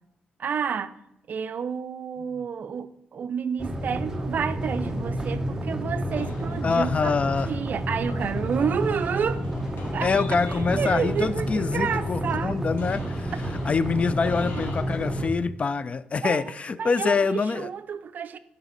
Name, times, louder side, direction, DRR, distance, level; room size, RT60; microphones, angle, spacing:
voice 1, 0.4-0.9 1.3-7.1 7.5-9.4 9.9-10.1 10.5-12.6 16.2-16.4 16.8-18.4, right 7 dB, 55° right, 0.5 m, -30 dB
sound 1, 3.6-15.3, right 1 dB, 15° right, 1.1 m, -30 dB
sound 2, 6.1-14.8, left 3 dB, 70° left, 1.9 m, -46 dB
voice 2, 6.6-7.5 10.0-13.3 13.6-17.7, left 5 dB, 35° left, 0.4 m, -25 dB
11.0 x 5.1 x 4.0 m
cardioid pair, 105°, 4 cm